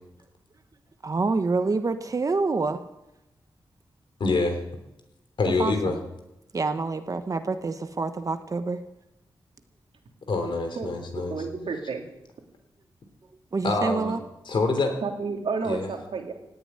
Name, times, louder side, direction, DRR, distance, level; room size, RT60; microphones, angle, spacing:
voice 1, 1.0-2.8 5.6-6.0 6.5-8.8 13.5-14.2, right 3 dB, 40° right, 9 dB, 0.9 m, -27 dB
voice 2, 4.2-4.6 5.4-6.0 10.3-11.3 13.6-14.2 14.4-15.0 15.6-15.9, left 3 dB, 60° left, 5 dB, 3.2 m, -25 dB
voice 3, 10.8-12.0 15.0-16.3, right 4 dB, 75° right, 2 dB, 2.8 m, -31 dB
17.0 x 6.8 x 9.9 m, 0.89 s
wide cardioid pair, 145°, 9 cm